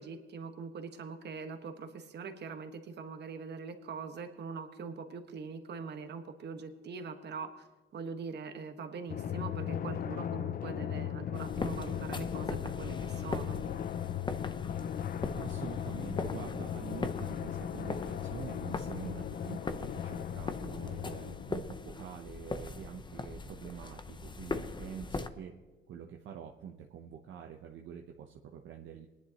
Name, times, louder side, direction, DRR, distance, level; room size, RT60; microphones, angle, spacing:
voice 1, 0.0-7.7 7.9-13.6, right 5 dB, 60° right, 6 dB, 1.4 m, -42 dB
Drum, 9.1-22.2, left 9 dB, 45° left, 0.4 m, -37 dB
sound 1, 11.4-25.3, left 3 dB, 25° left, 0.7 m, -41 dB
voice 2, 15.3-25.5 25.9-29.1, right 8 dB, 75° right, 2 dB, 0.9 m, -46 dB
20.5 x 10.5 x 2.9 m, 1.3 s
cardioid pair, 90°, 20 cm